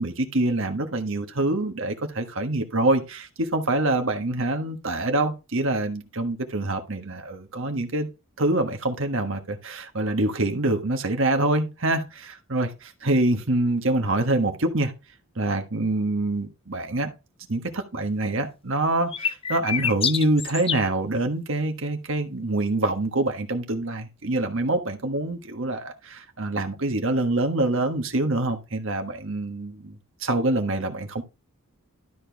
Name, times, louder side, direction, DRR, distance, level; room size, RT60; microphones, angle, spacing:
voice 1, 0.0-8.1 8.4-12.7 13.0-14.9 15.4-17.1 17.5-31.2, right 2 dB, 65° right, 1.4 m, -25 dB
sound 1, 19.1-20.9, left 7 dB, 25° left, 0.4 m, -27 dB
12.5 x 4.5 x 3.5 m
head